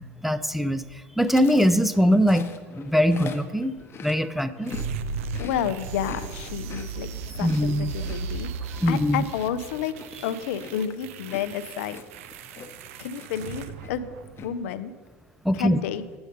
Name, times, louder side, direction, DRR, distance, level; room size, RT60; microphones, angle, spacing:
voice 1, 0.0-2.5 2.7-3.7 4.0-4.7 7.4-7.9 8.8-9.2 15.4-15.8, equal, ahead, 12 dB, 0.4 m, -22 dB
Chewing mastication, 1.2-4.9 5.2-12.9 13.2-13.5 13.8-14.5, left 6 dB, 35° left, 0.8 m, -43 dB
sound 1, 4.7-14.6, right 5 dB, 75° right, 0.5 m, -36 dB
voice 2, 5.4-7.1 7.4-8.5 8.9-9.9 10.2-12.0 13.0-14.1 14.4-14.9 15.5-16.0, left 9 dB, 75° left, 13 dB, 0.5 m, -30 dB
7.9 x 5.1 x 5.0 m, 1.4 s
hypercardioid pair, 90°, 7 cm